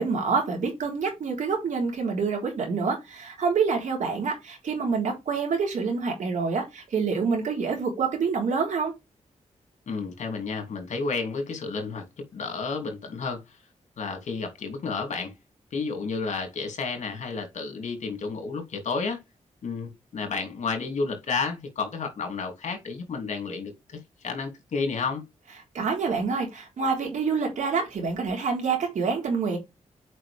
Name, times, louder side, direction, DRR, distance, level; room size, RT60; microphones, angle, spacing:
voice 1, 0.0-8.9 25.7-29.6, right 5 dB, 80° right, 3.6 m, -27 dB
voice 2, 9.9-13.6 14.0-15.3 15.7-19.2 19.6-25.2, left 4 dB, 70° left, 2.7 m, -31 dB
7.5 x 5.2 x 3.4 m
wide cardioid pair, 120°, 12 cm